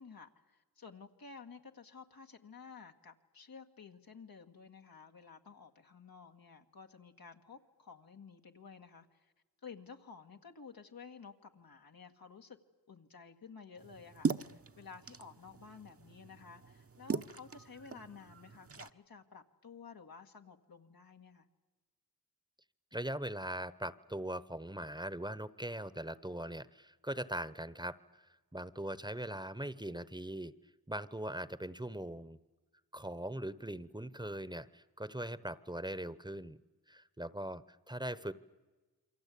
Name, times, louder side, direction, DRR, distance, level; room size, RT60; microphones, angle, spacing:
voice 1, 0.0-9.3 9.6-12.6 12.9-21.5, left 5 dB, 80° left, 3 dB, 1.9 m, -53 dB
sound 1, 13.8-18.9, right 5 dB, 40° right, 1.0 m, -40 dB
voice 2, 22.9-30.5 30.9-32.4 32.9-36.6 36.9-38.3, right 1 dB, 10° right, 16 dB, 1.0 m, -41 dB
28.0 x 23.5 x 8.5 m, 1.2 s
cardioid pair, 45°, 35 cm